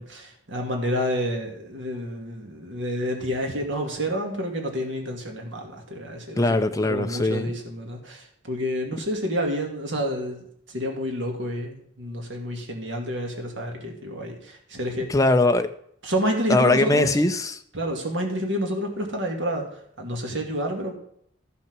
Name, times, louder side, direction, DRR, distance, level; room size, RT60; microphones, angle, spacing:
voice 1, 0.0-15.1 16.0-17.1 17.7-20.9, equal, 75° right, 2.3 m, -29 dB
voice 2, 6.4-7.5 15.1-15.7 16.5-17.6, left 2 dB, 20° left, 0.6 m, -21 dB
13.5 x 6.0 x 6.1 m
head